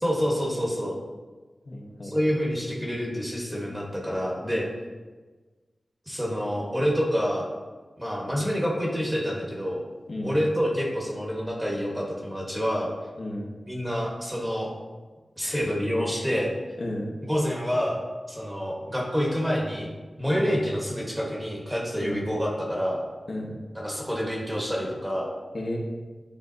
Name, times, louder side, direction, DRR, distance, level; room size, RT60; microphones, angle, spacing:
voice 1, 0.0-0.9 2.0-4.7 6.1-7.5 8.0-9.8 10.2-12.9 13.7-14.7 15.4-16.5 17.2-23.0 23.7-25.3, equal, 5° right, -2 dB, 1.3 m, -27 dB
voice 2, 1.6-2.1 10.1-10.4 13.2-13.5 15.4-15.6 16.2-16.3 16.8-17.1 20.3-20.6 22.0-22.2 23.3-23.6 25.5-25.8, left 1 dB, 55° left, -2 dB, 1.1 m, -33 dB
10.0 x 3.4 x 2.7 m, 1.3 s
wide cardioid pair, 100°, 0 cm